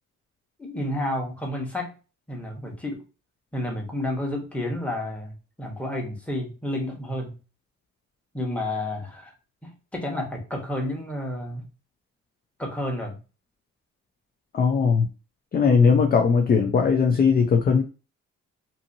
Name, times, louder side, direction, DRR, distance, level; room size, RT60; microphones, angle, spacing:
voice 1, 0.6-1.9 2.3-3.0 3.5-7.4 8.3-9.3 9.6-11.6 12.6-13.2 15.8-16.0, left 1 dB, 5° left, 1.0 m, -31 dB
voice 2, 14.5-15.1 15.5-17.8, left 5 dB, 30° left, 0.4 m, -19 dB
2.7 x 2.7 x 2.6 m
cardioid pair, 90°, 30 cm